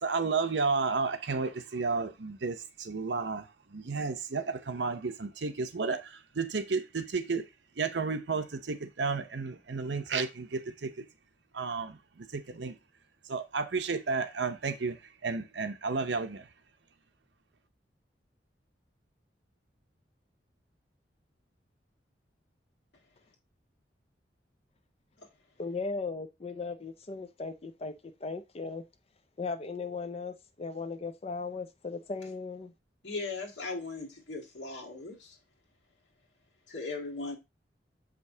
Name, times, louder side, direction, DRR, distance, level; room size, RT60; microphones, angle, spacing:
voice 1, 0.0-7.4 7.8-11.1 11.5-12.8 13.3-15.0 15.2-16.5, right 4 dB, 75° right, 0.7 m, -32 dB
voice 2, 25.6-28.8 29.4-32.7, left 4 dB, 35° left, 0.5 m, -37 dB
voice 3, 33.0-35.4 36.7-37.4, left 3 dB, 80° left, 1.9 m, -38 dB
6.6 x 5.2 x 2.7 m
head